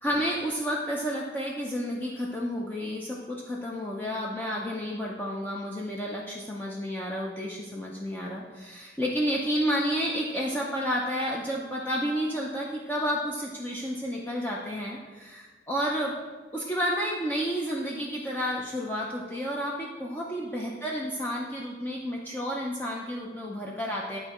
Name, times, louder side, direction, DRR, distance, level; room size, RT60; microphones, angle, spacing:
voice 1, 0.0-16.1 16.5-24.2, equal, 10° left, -3 dB, 0.5 m, -31 dB
11.0 x 4.3 x 3.0 m, 1.4 s
head